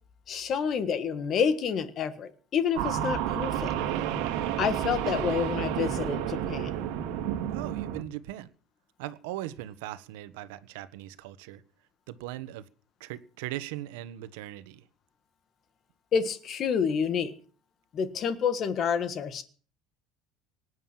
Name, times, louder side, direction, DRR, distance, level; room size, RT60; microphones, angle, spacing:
voice 1, 0.3-3.7 4.6-6.8 16.1-17.3 17.9-19.4, left 6 dB, 30° left, 1.6 m, -28 dB
sound 1, 2.8-8.0, right 10 dB, 65° right, 2.2 m, -30 dB
voice 2, 7.5-8.5 9.0-11.6 12.1-12.7 13.0-14.9, right 14 dB, 85° right, 1.3 m, -39 dB
19.0 x 9.5 x 7.5 m
cardioid pair, 175°, 0 cm